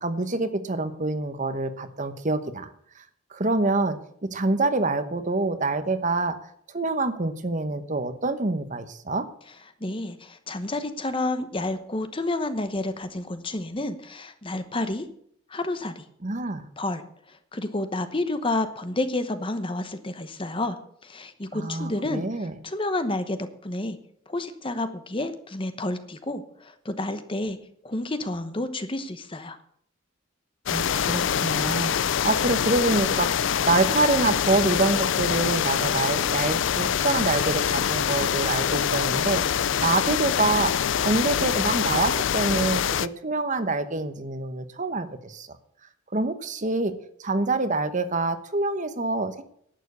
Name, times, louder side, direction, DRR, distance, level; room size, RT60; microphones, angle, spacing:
voice 1, 0.0-2.7 3.0-3.1 3.3-6.4 6.7-9.3 16.2-16.6 21.5-22.5 30.7-40.7 41.0-45.5 46.1-46.9 47.2-49.4, right 2 dB, 35° right, 10 dB, 1.0 m, -26 dB
voice 2, 9.8-15.1 15.5-16.0 16.8-17.0 17.3-20.8 21.0-22.2 22.6-24.0 24.3-27.6 27.8-29.6, left 2 dB, 25° left, 10 dB, 1.0 m, -30 dB
sound 1, 30.7-43.1, left 8 dB, 60° left, 0.4 m, -25 dB
11.5 x 9.1 x 6.8 m, 0.65 s
head